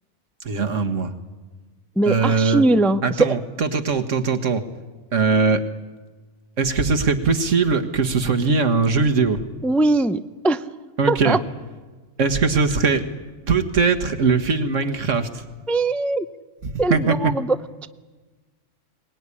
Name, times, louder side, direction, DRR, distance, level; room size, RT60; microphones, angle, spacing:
voice 1, 0.4-1.1 2.1-2.6 3.0-4.6 5.1-5.6 6.6-9.4 11.0-11.4 12.2-13.0 13.5-15.4 16.6-17.2, right 4 dB, 85° right, 5 dB, 1.9 m, -20 dB
voice 2, 2.0-3.3 9.6-10.6 11.1-11.4 15.7-16.3 16.8-17.6, right 2 dB, ahead, 11 dB, 0.4 m, -20 dB
23.0 x 20.0 x 9.9 m, 1.3 s
omnidirectional pair, 1.3 m